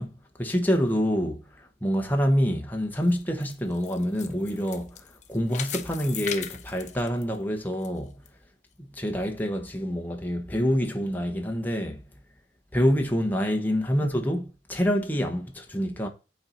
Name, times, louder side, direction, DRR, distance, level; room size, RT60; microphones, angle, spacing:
voice 1, 0.0-8.1 8.9-12.0 12.7-16.1, equal, 10° left, 1.1 m, -27 dB
sound 1, 2.9-7.9 8.3-8.4 8.9-9.0, left 9 dB, 45° left, 0.7 m, -38 dB
8.7 x 4.4 x 4.0 m
head